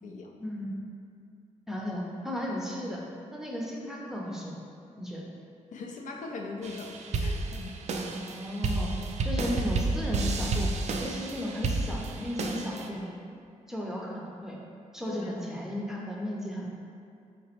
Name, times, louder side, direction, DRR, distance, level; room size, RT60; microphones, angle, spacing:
voice 1, 0.4-0.8 1.7-3.0 3.3-4.6 5.0-5.3 8.1-9.0 9.2-10.7 11.0-13.1 13.7-14.6 14.9-16.7, left 1 dB, 5° right, -3 dB, 0.6 m, -35 dB
voice 2, 5.7-7.7 15.1-15.3, left 3 dB, 75° left, 2 dB, 0.5 m, -40 dB
sound 1, 6.6-12.9, right 3 dB, 60° right, 0.4 m, -31 dB
4.7 x 3.0 x 2.9 m, 2.4 s
wide cardioid pair, 110°, 13 cm